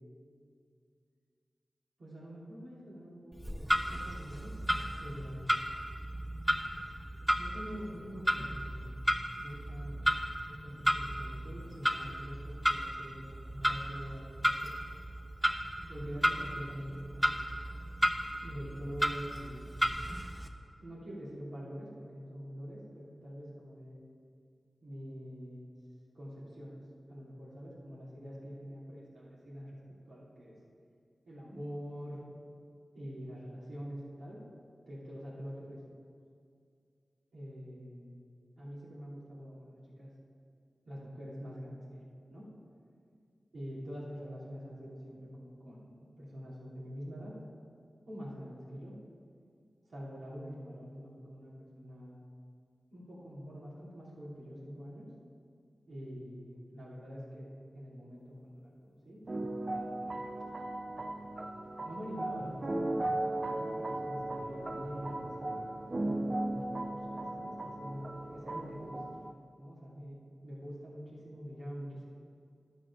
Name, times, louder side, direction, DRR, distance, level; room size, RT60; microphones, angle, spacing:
voice 1, 2.0-4.5 5.0-5.6 7.4-9.0 9.4-10.1 10.4-14.7 15.9-17.7 18.4-19.7 20.8-24.0 24.8-25.8 26.1-26.7 27.1-30.6 31.3-32.2 32.9-34.4 34.9-35.9 37.3-38.2 38.6-40.1 40.8-42.0 42.3-42.5 43.5-47.4 48.1-49.0 49.9-52.2 52.9-55.1 55.9-60.1 61.8-65.6 66.0-69.3 69.6-72.1, equal, 85° right, -7 dB, 2.8 m, -45 dB
Clock, 3.3-20.5, equal, 5° right, 0.9 m, -34 dB
sound 1, 59.3-69.3, right 1 dB, 45° right, 0.6 m, -37 dB
11.5 x 6.2 x 5.6 m, 2.3 s
cardioid pair, 40°, 0 cm